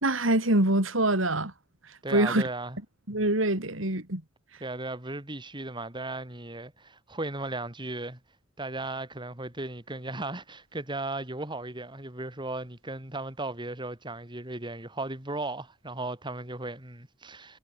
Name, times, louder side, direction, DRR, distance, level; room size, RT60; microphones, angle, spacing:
voice 1, 0.0-1.5 2.1-2.4 3.1-4.2, right 1 dB, 85° right, 4.7 m, -24 dB
voice 2, 2.0-2.8 4.6-8.2 8.6-17.6, right 2 dB, 25° right, 3.5 m, -36 dB
head